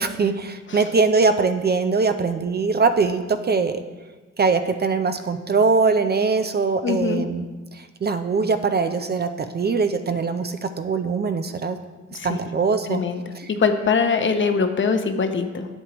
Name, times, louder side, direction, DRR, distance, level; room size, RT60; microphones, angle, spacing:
voice 1, 0.0-3.8 4.4-7.4 7.7-11.8 12.2-13.0 13.4-13.5, right 4 dB, 35° right, 8 dB, 0.5 m, -22 dB
voice 2, 6.8-7.2 12.1-12.4 12.9-15.7, left 5 dB, 40° left, 7 dB, 0.8 m, -22 dB
7.9 x 7.7 x 3.0 m, 1.3 s
supercardioid pair, 65°, 30 cm